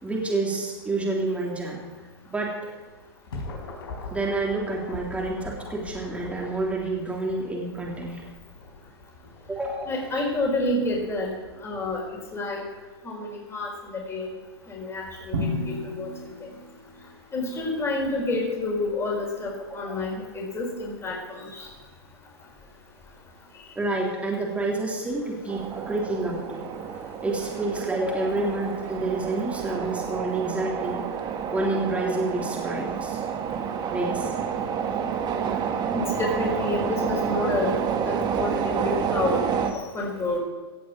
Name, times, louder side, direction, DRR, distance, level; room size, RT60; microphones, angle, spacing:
voice 1, 0.0-1.8 2.2-2.6 4.1-8.2 9.5-10.2 19.7-20.0 23.7-26.6 27.2-31.0 31.5-33.2 33.9-34.3, right 2 dB, 10° right, -2 dB, 3.4 m, -28 dB
sound 1, 2.9-12.4, left 3 dB, 70° left, 5.0 m, -42 dB
voice 2, 9.9-11.3 11.6-12.0 12.3-12.6 13.0-14.3 14.7-15.3 15.7-16.1 17.3-21.1 35.9-37.7 38.1-39.4 39.9-40.4, left 2 dB, 20° left, -1 dB, 4.8 m, -28 dB
Drum, 15.3-17.3, left 1 dB, 75° right, 2.6 m, -32 dB
sound 2, 25.5-39.7, right 7 dB, 30° right, 1.7 m, -29 dB
17.0 x 6.8 x 7.8 m, 1.3 s
hypercardioid pair, 110°, 13 cm